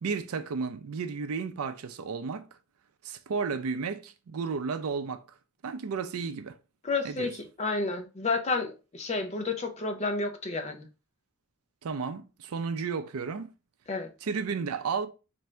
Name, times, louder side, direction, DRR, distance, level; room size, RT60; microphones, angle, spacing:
voice 1, 0.0-2.5 3.0-5.2 5.6-6.6 7.0-7.3 11.8-13.5 14.2-15.1, right 5 dB, 75° right, 0.4 m, -33 dB
voice 2, 6.8-7.3 7.6-10.9 13.9-14.1, left 3 dB, 30° left, 0.5 m, -30 dB
3.2 x 2.6 x 4.4 m
head